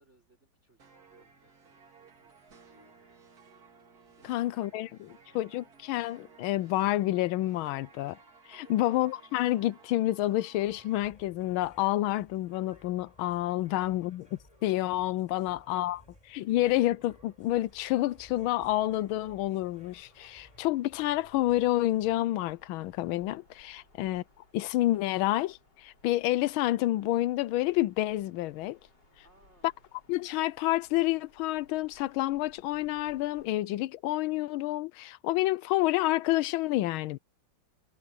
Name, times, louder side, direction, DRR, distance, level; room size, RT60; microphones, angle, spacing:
voice 1, 0.0-3.4 4.1-5.4 8.6-8.9 13.6-14.0 15.3-16.5 23.8-23.9 29.2-29.9, right 2 dB, 30° right, 5.7 m, -67 dB
sound 1, 0.8-11.1, right 5 dB, 45° right, 2.4 m, -57 dB
voice 2, 4.3-4.9 5.3-8.2 8.5-14.3 14.6-16.0 16.3-24.2 24.5-28.8 30.1-37.2, left 16 dB, 80° left, 1.4 m, -29 dB
sound 2, 10.6-22.4, left 1 dB, 15° left, 4.4 m, -59 dB
sound 3, 17.4-33.5, left 2 dB, 55° left, 7.2 m, -64 dB
omnidirectional pair, 2.3 m